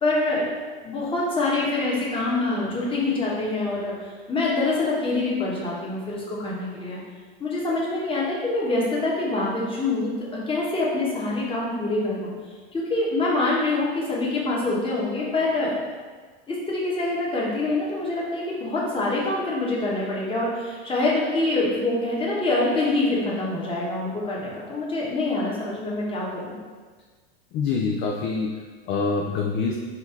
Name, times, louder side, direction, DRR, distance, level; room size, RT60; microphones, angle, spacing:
voice 1, 0.0-0.5 0.8-7.0 7.4-12.3 12.7-15.8 16.5-26.5, left 2 dB, 20° left, -5 dB, 1.2 m, -25 dB
voice 2, 27.5-29.8, left 4 dB, 40° left, 0 dB, 0.5 m, -26 dB
4.1 x 2.7 x 4.6 m, 1.5 s
supercardioid pair, 125°, 29 cm